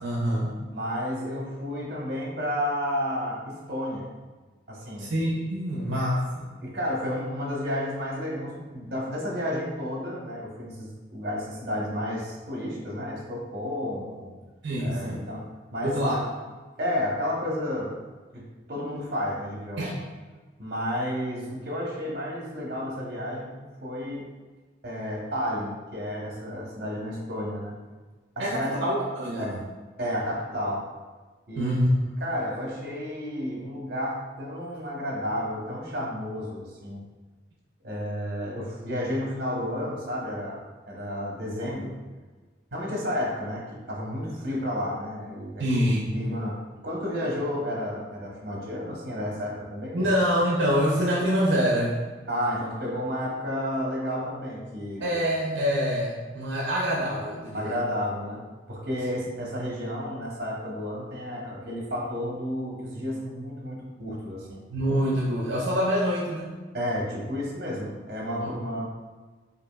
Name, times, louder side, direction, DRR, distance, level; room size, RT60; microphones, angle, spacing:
voice 1, 0.0-0.6 5.0-6.5 14.6-15.2 15.8-16.2 19.8-19.9 28.4-29.6 31.5-31.9 45.6-46.2 49.9-52.0 55.0-57.7 64.7-66.6 68.4-68.5, equal, 75° right, -4 dB, 0.5 m, -25 dB
voice 2, 0.7-4.1 4.7-5.1 6.6-14.3 14.8-15.4 15.7-16.3 16.8-17.9 18.3-18.4 18.7-19.8 20.6-24.2 24.8-27.8 28.4-28.8 29.4-29.6 30.0-30.8 31.5-31.8 32.2-37.0 37.8-41.9 42.7-45.8 46.1-50.1 52.3-55.0 57.5-58.4 58.7-64.6 66.7-68.8, equal, 55° right, -3 dB, 1.0 m, -31 dB
4.8 x 2.6 x 2.3 m, 1.3 s
head